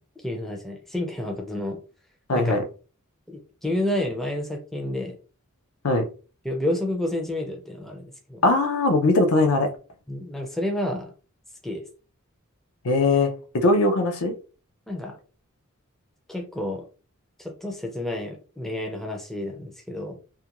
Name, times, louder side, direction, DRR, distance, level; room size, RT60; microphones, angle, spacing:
voice 1, 0.2-1.8 2.3-2.6 3.3-5.2 6.4-8.4 10.1-11.1 11.6-11.8 14.9-15.2 16.3-16.9 17.4-20.2, left 1 dB, ahead, 0.4 m, -30 dB
voice 2, 2.3-2.6 5.8-6.1 8.4-9.7 12.8-14.3, left 2 dB, 75° left, 0.5 m, -20 dB
2.4 x 2.2 x 2.9 m
head